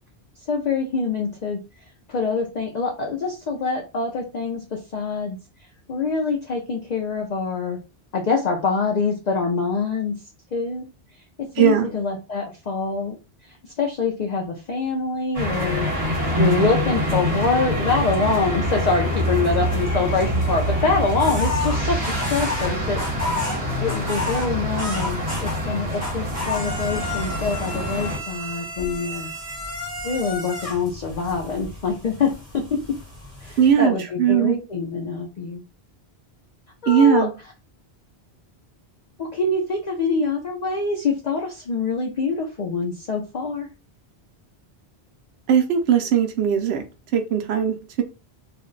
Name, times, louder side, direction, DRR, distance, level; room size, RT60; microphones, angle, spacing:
voice 1, 0.5-1.6 2.1-5.4 5.9-7.8 8.1-10.1 10.5-10.9 11.6-13.2 13.4-15.9 16.2-23.0 23.8-29.3 30.0-32.3 33.4-35.6 36.8-37.3 39.2-43.7, left 4 dB, 55° left, 0.5 m, -25 dB
voice 2, 11.6-11.9 33.6-34.6 36.9-37.3 45.5-46.8 47.1-48.0, right 8 dB, 75° right, 0.8 m, -19 dB
sound 1, 15.3-28.2, equal, 35° right, 1.4 m, -25 dB
sound 2, 21.2-25.7 26.0-33.7, left 2 dB, 15° right, 1.1 m, -32 dB
2.6 x 2.1 x 3.7 m
omnidirectional pair, 1.1 m